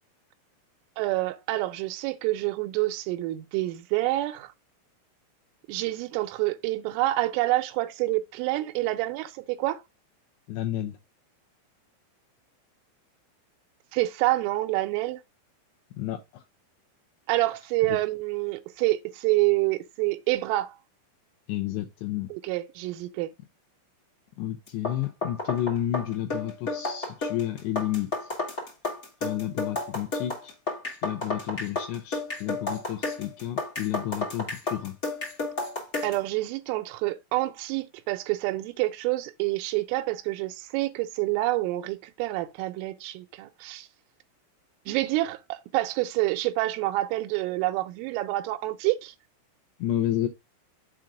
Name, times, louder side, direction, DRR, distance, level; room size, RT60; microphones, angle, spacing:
voice 1, 1.0-4.5 5.7-9.8 13.9-15.2 17.3-20.8 22.3-23.3 36.0-43.9 44.9-49.1, right 18 dB, 85° right, 3.2 m, -27 dB
voice 2, 10.5-11.0 16.0-16.4 17.9-18.0 21.5-22.3 24.4-28.3 29.2-30.5 31.0-35.0 49.8-50.3, left 12 dB, 80° left, 2.6 m, -31 dB
sound 1, 24.7-36.2, left 2 dB, 45° left, 0.8 m, -32 dB
7.5 x 3.8 x 4.9 m
omnidirectional pair, 5.7 m